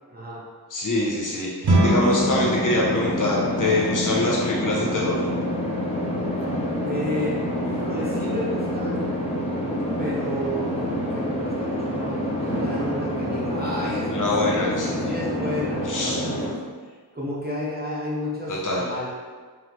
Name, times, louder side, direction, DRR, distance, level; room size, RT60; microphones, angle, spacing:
voice 1, 0.1-0.5 6.8-9.0 10.0-16.5 16.8-19.1, left 1 dB, 25° right, -6 dB, 0.7 m, -32 dB
voice 2, 0.7-5.2 14.1-15.0 15.8-16.2 18.5-18.8, left 1 dB, 50° left, -4 dB, 0.8 m, -24 dB
sound 1, 1.6-11.1, right 1 dB, 75° right, 0.7 m, -30 dB
sound 2, 1.7-16.5, left 1 dB, 15° left, 0.8 m, -27 dB
3.6 x 3.2 x 3.1 m, 1.5 s
wide cardioid pair, 50°, 39 cm